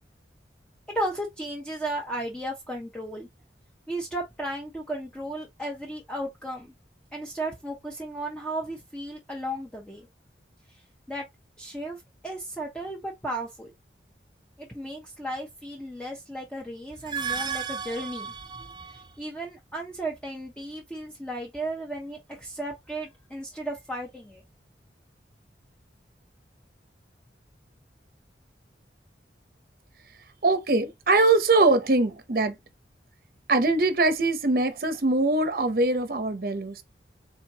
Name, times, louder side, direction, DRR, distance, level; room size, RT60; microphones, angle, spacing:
voice 1, 0.9-3.3 3.9-6.7 7.1-10.0 11.1-11.3 11.6-13.7 14.6-18.3 18.9-24.4, right 1 dB, 5° left, 0.8 m, -34 dB
sound 1, 16.9-19.2, right 6 dB, 25° right, 0.5 m, -34 dB
voice 2, 30.4-32.6 33.5-36.8, right 2 dB, 50° right, 0.7 m, -22 dB
4.4 x 3.5 x 2.8 m
head